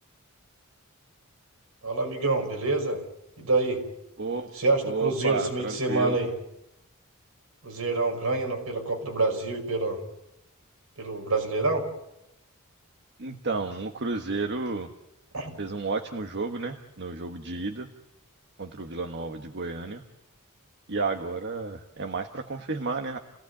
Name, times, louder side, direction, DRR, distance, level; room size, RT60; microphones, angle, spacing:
voice 1, 1.8-3.0 3.4-3.8 4.5-6.3 7.6-10.0 11.0-11.8 15.3-15.6, right 3 dB, 70° right, 2 dB, 5.4 m, -27 dB
voice 2, 4.2-4.5 4.8-6.2 13.2-14.9 15.6-17.9 18.6-20.0 20.9-23.2, right 3 dB, 55° right, 5 dB, 1.4 m, -31 dB
29.0 x 17.5 x 8.5 m, 0.86 s
head